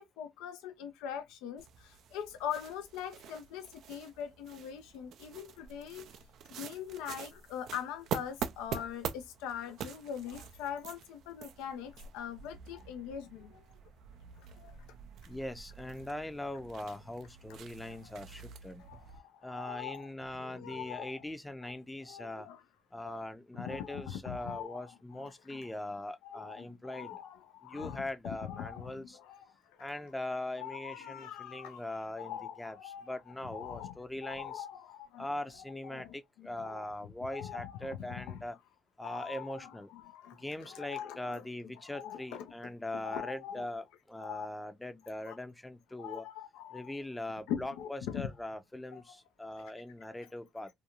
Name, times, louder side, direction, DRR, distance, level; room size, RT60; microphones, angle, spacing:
voice 1, 0.0-6.1 6.5-13.7 14.4-14.8 18.0-18.1 18.8-21.2 21.6-21.7 22.0-22.6 23.0-23.2 23.5-25.7 26.2-29.5 29.8-29.9 30.6-31.8 32.2-33.2 33.5-35.3 35.7-36.9 37.3-38.4 39.0-41.4 41.9-42.5 42.9-43.7 44.2-44.5 45.3-45.4 46.0-46.9 47.5-48.3 48.9-49.0, left 9 dB, 85° left, 0.4 m, -42 dB
sound 1, 1.6-19.2, right 8 dB, 70° right, 0.3 m, -46 dB
voice 2, 15.3-18.8 19.4-22.5 22.9-27.2 27.6-29.2 29.8-34.6 35.2-38.6 39.0-39.9 40.3-46.2 46.7-50.7, left 1 dB, 10° left, 0.5 m, -41 dB
2.5 x 2.2 x 2.8 m
supercardioid pair, 60°, 0 cm